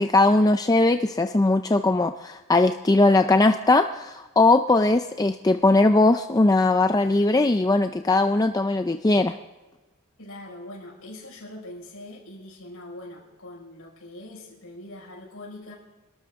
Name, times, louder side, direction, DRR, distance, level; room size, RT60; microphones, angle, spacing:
voice 1, 0.0-9.4, left 2 dB, 15° left, 8 dB, 0.4 m, -20 dB
voice 2, 10.2-15.7, left 1 dB, 80° left, -1 dB, 5.4 m, -42 dB
27.5 x 13.0 x 3.6 m, 1.2 s
head